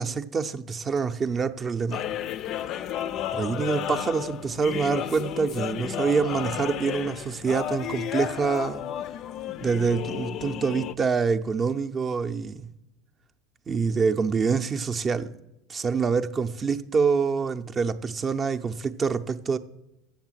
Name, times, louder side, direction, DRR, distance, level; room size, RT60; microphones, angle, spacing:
voice 1, 0.0-2.0 3.3-8.9 9.6-12.7 13.7-15.3 15.7-19.6, right 5 dB, 30° right, 0.5 m, -26 dB
sound 1, 1.9-10.9, left 11 dB, 50° left, 0.4 m, -32 dB
7.4 x 7.3 x 7.4 m
hypercardioid pair, 90°, 0 cm